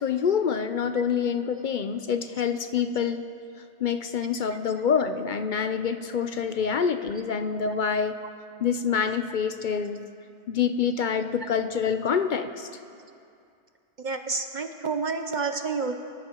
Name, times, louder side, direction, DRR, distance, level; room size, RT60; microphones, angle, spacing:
voice 1, 0.0-3.2 3.8-8.2 8.6-10.0 10.5-12.7, left 7 dB, 55° left, 9 dB, 0.6 m, -26 dB
voice 2, 14.0-15.9, right 4 dB, 50° right, 6 dB, 0.7 m, -29 dB
24.0 x 13.5 x 2.9 m, 2.5 s
omnidirectional pair, 1.2 m